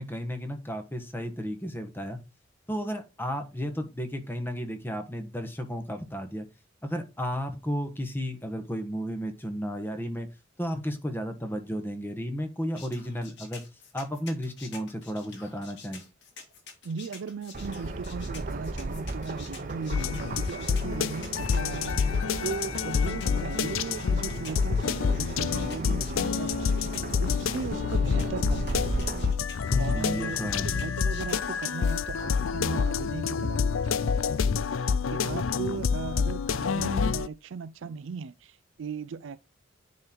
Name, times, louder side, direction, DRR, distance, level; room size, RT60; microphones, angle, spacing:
voice 1, 0.0-2.2 2.7-6.5 6.8-10.3 10.6-13.6 13.9-16.0 29.7-30.7, equal, 10° left, 1.2 m, -33 dB
sound 1, 12.7-32.2, left 5 dB, 60° left, 2.2 m, -49 dB
voice 2, 16.8-26.9 27.2-29.0 29.8-39.5, right 5 dB, 70° right, 0.4 m, -38 dB
sound 2, 17.5-29.3, right 2 dB, 45° right, 0.8 m, -36 dB
sound 3, 19.9-37.3, left 6 dB, 85° left, 0.5 m, -28 dB
9.8 x 3.8 x 4.4 m
head